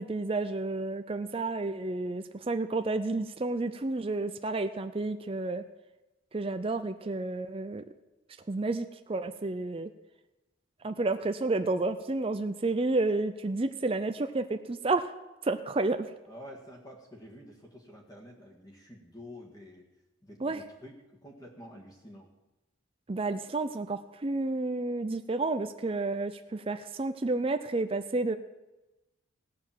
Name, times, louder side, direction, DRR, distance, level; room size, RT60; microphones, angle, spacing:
voice 1, 0.0-5.6 6.3-7.8 8.5-9.9 10.8-15.1 15.4-16.1 20.4-20.6 23.1-28.4, right 2 dB, 30° right, 8 dB, 0.5 m, -31 dB
voice 2, 16.3-19.8 20.2-21.0 21.2-22.3, equal, 20° left, 0 dB, 1.9 m, -49 dB
16.5 x 6.8 x 7.5 m, 1.0 s
head